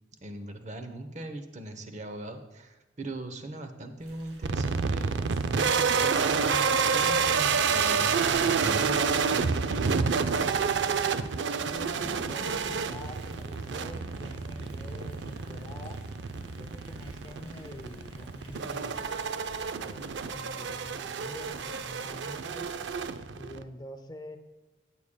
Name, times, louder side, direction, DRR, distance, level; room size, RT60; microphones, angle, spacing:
voice 1, 0.2-10.2, right 1 dB, 40° right, 7 dB, 0.8 m, -39 dB
Thunder / Rain, 4.0-23.1, equal, 90° right, 2.0 m, -47 dB
sound 1, 4.4-23.6, right 5 dB, 70° right, 0.4 m, -29 dB
voice 2, 11.7-16.1 16.5-19.0 19.8-22.7 23.3-24.4, left 1 dB, 20° left, 7 dB, 0.5 m, -45 dB
13.5 x 8.5 x 2.2 m, 1.1 s
head